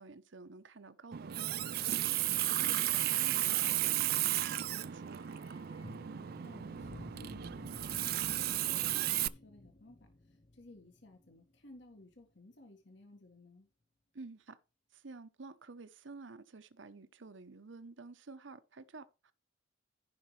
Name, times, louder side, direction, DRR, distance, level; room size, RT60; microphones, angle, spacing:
voice 1, 0.0-1.7 2.5-5.2 14.1-14.6 14.9-19.3, right 3 dB, 70° right, 0.8 m, -51 dB
Water tap faucet, 1.1-9.3, right 14 dB, 50° right, 0.3 m, -34 dB
sound 1, 4.4-12.3 12.5-12.6, left 1 dB, 30° left, 0.6 m, -55 dB
voice 2, 6.1-13.7, left 1 dB, 65° left, 1.7 m, -57 dB
15.0 x 5.3 x 3.3 m
head